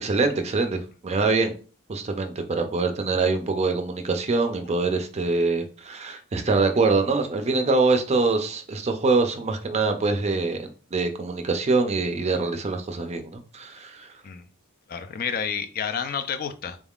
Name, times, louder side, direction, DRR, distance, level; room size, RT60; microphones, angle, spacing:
voice 1, 0.0-1.5 1.9-14.1, right 3 dB, 30° right, 0.5 m, -24 dB
voice 2, 14.9-16.8, left 7 dB, 45° left, 0.4 m, -30 dB
3.8 x 3.6 x 2.3 m
head